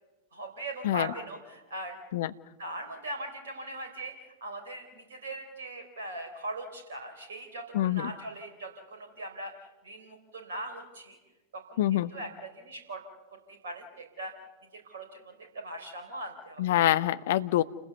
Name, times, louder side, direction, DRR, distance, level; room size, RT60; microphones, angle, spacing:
voice 1, 0.3-2.0 2.6-9.5 9.8-11.2 11.5-13.0 13.3-14.3 14.7-16.6, right 1 dB, 65° right, 4 dB, 3.8 m, -40 dB
voice 2, 7.7-8.1 11.8-12.1 16.6-17.6, left 13 dB, 55° left, 14 dB, 0.9 m, -25 dB
29.0 x 20.0 x 7.0 m, 1.1 s
figure-of-eight pair, 90°, 0 cm